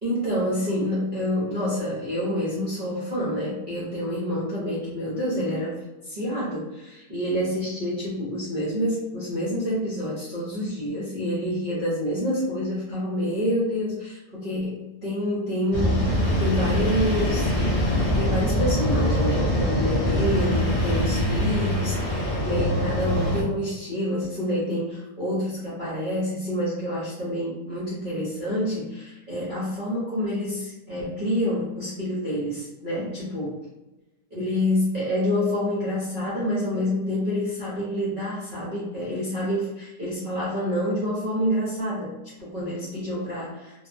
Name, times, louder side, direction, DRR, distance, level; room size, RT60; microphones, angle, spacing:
voice 1, 0.0-17.5 18.1-33.6 34.3-43.9, equal, 50° right, -8 dB, 0.6 m, -28 dB
sound 1, 15.7-23.4, left 1 dB, 50° left, 0.4 m, -23 dB
2.8 x 2.1 x 2.5 m, 1.0 s
omnidirectional pair, 1.8 m